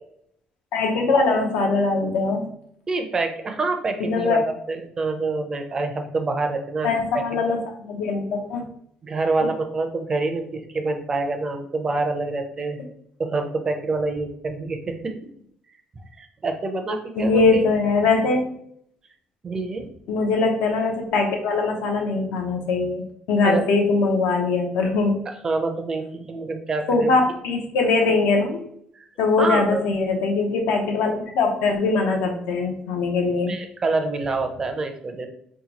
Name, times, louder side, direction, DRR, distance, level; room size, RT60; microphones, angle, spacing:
voice 1, 0.7-2.5 4.0-4.4 6.8-8.6 9.4-9.5 17.1-18.5 20.1-23.0 23.3-25.1 26.9-28.6 29.2-33.5, left 3 dB, 85° left, 3 dB, 0.6 m, -21 dB
voice 2, 2.9-7.2 9.0-12.8 13.2-15.1 16.2-17.6 19.4-19.9 23.4-23.6 25.3-27.1 28.9-29.1 29.4-29.8 33.5-35.3, right 3 dB, 25° right, 6 dB, 0.4 m, -26 dB
2.8 x 2.2 x 3.9 m, 0.69 s
cardioid pair, 150°, 2 cm